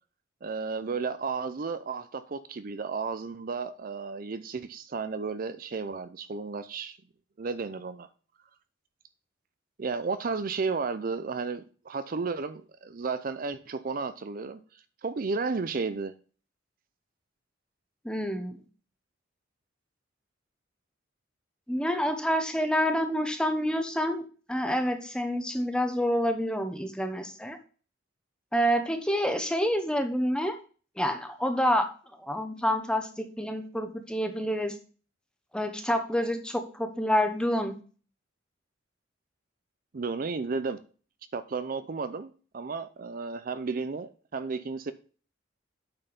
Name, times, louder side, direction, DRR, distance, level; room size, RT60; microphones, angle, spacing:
voice 1, 0.4-7.0 7.4-8.1 9.8-14.6 15.0-16.1 39.9-40.8 41.3-44.9, right 4 dB, 50° right, 0.5 m, -33 dB
voice 2, 18.0-18.6 21.7-24.2 24.5-27.6 28.5-30.6 31.0-31.9 32.2-34.7 35.5-37.7, equal, 5° left, 0.9 m, -28 dB
8.9 x 4.5 x 5.2 m
head